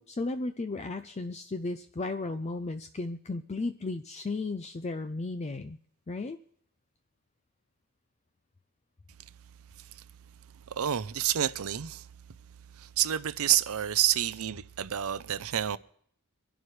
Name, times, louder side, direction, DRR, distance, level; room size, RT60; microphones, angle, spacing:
voice 1, 0.0-5.8 6.1-6.4, left 3 dB, 30° left, 0.5 m, -34 dB
voice 2, 10.7-12.0 12.8-15.8, right 11 dB, 70° right, 0.6 m, -28 dB
24.0 x 11.0 x 3.2 m
head